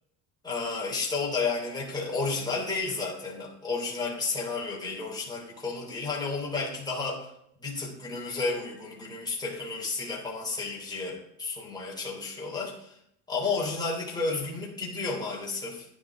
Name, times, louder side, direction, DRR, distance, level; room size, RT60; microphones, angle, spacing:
voice 1, 0.4-7.3 7.6-13.0 13.3-15.9, left 4 dB, 10° left, -3 dB, 3.0 m, -32 dB
10.5 x 10.5 x 3.7 m, 0.75 s
cardioid pair, 135°, 50 cm